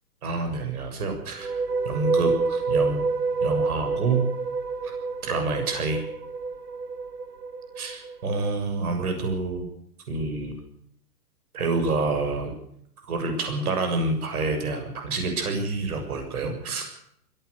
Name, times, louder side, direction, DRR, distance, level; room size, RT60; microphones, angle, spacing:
voice 1, 0.2-3.1 3.4-4.2 4.8-4.9 5.2-6.0 7.8-9.7 10.1-10.6 11.5-12.6 13.0-16.9, right 3 dB, 70° right, 6 dB, 7.0 m, -28 dB
sound 1, 1.3-8.6, right 4 dB, 90° right, 2.0 m, -28 dB
22.5 x 17.0 x 6.8 m, 0.72 s
hypercardioid pair, 130°, 46 cm